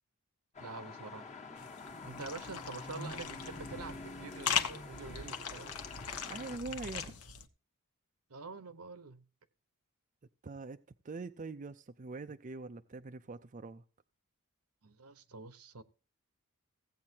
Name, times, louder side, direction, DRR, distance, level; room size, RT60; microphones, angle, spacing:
sound 1, 0.5-6.6, left 3 dB, 30° left, 1.3 m, -47 dB
voice 1, 0.6-1.3 2.0-5.7 8.3-9.2 14.8-15.8, right 4 dB, 75° right, 1.0 m, -46 dB
sound 2, 1.6-7.5, left 7 dB, 80° left, 1.1 m, -39 dB
voice 2, 6.3-7.2 10.4-10.8 11.0-13.8, right 3 dB, 35° right, 0.5 m, -43 dB
16.0 x 8.6 x 2.8 m
head